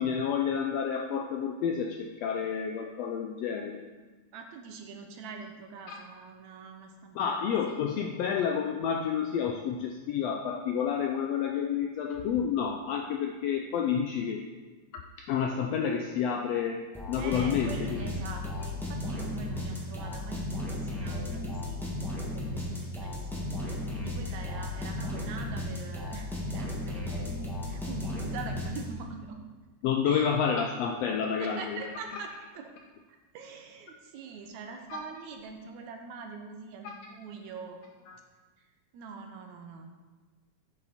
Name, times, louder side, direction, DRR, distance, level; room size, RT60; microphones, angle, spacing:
voice 1, 0.0-3.9 5.9-6.0 7.1-14.5 15.3-16.8 17.1-18.0 29.8-31.8 34.9-35.0 36.8-36.9 38.1-38.2, left 7 dB, 90° left, 3 dB, 1.4 m, -29 dB
voice 2, 4.3-7.8 17.2-21.8 22.3-27.3 27.7-29.4 30.0-30.3 31.3-32.3 32.5-32.7 33.3-38.2 38.9-39.9, right 5 dB, 75° right, 4 dB, 2.1 m, -44 dB
sound 1, 16.9-29.2, left 1 dB, ahead, 1.0 m, -35 dB
8.3 x 6.9 x 4.2 m, 1.3 s
omnidirectional pair, 3.5 m